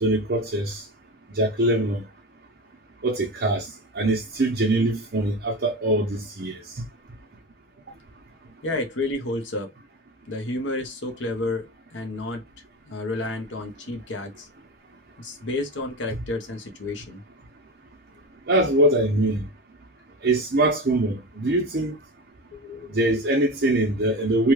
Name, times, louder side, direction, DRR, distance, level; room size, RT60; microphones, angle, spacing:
voice 1, 0.0-0.8 1.4-2.0 3.0-3.7 3.9-6.6 18.5-19.4 20.2-21.9 22.9-24.5, right 1 dB, 55° right, 0.7 m, -22 dB
voice 2, 8.6-9.7 10.3-12.4 12.9-14.5 15.2-17.2 22.5-23.0, left 2 dB, 85° left, 0.9 m, -31 dB
2.9 x 2.3 x 3.2 m
head